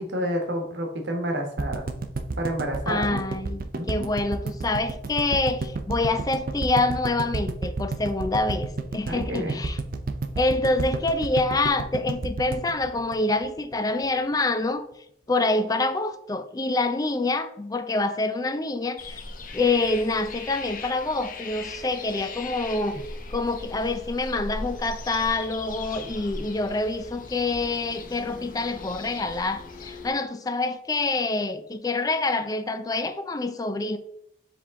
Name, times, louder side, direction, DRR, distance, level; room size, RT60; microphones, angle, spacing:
voice 1, 0.0-1.9 2.4-3.2 3.7-4.1 9.1-9.6, equal, 70° right, 1.2 m, -29 dB
sound 1, 1.6-13.7 14.0-14.1 14.3-14.4, right 3 dB, 55° right, 0.5 m, -31 dB
voice 2, 2.9-9.8 10.4-14.8 15.3-19.2 19.5-34.0, left 2 dB, 20° left, 0.4 m, -26 dB
sound 2, 19.0-30.1, left 3 dB, 50° left, 0.7 m, -39 dB
7.1 x 3.6 x 3.6 m
head